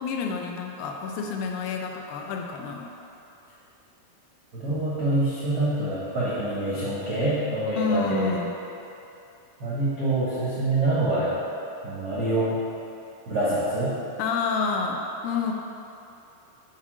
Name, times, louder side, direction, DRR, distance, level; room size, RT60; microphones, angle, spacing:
voice 1, 0.0-2.9 7.7-8.5 14.2-15.5, left 5 dB, 80° left, 2 dB, 2.2 m, -28 dB
voice 2, 4.5-8.3 9.6-11.3 11.8-12.5 13.3-13.9, right 2 dB, 75° right, -10 dB, 0.9 m, -26 dB
7.3 x 4.3 x 6.2 m, 2.8 s
omnidirectional pair, 4.5 m